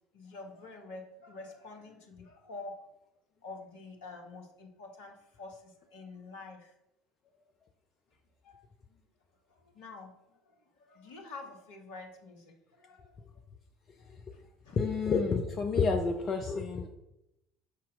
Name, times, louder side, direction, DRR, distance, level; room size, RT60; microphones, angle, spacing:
voice 1, 0.1-2.8 3.4-6.7 8.4-8.6 8.9-9.1 9.5-13.2 14.0-14.8, left 3 dB, 65° left, 3 dB, 1.4 m, -48 dB
voice 2, 14.7-17.0, left 4 dB, 40° left, 4 dB, 0.7 m, -29 dB
8.5 x 5.7 x 3.8 m, 0.88 s
figure-of-eight pair, 60°, 0 cm